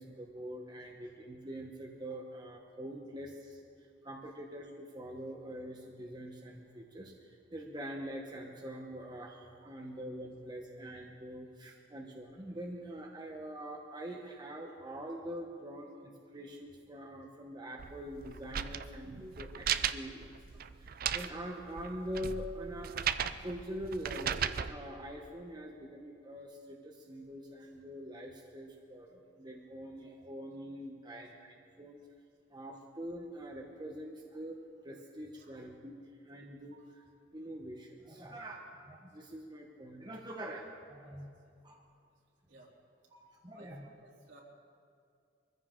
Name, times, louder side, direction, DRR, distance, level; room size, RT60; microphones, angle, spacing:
voice 1, 0.0-3.6 4.0-7.1 7.5-20.3 20.9-22.9 23.4-31.3 31.8-32.0 32.5-34.6 34.8-35.9 36.2-36.8 37.3-38.6 38.9-41.3 41.6-41.8 43.1-43.8, equal, 20° right, 0 dB, 1.1 m, -44 dB
sound 1, 17.8-24.7, right 8 dB, 50° right, 0.5 m, -36 dB
voice 2, 43.5-44.4, right 2 dB, 70° right, -4 dB, 3.2 m, -59 dB
23.5 x 14.5 x 3.8 m, 2.4 s
head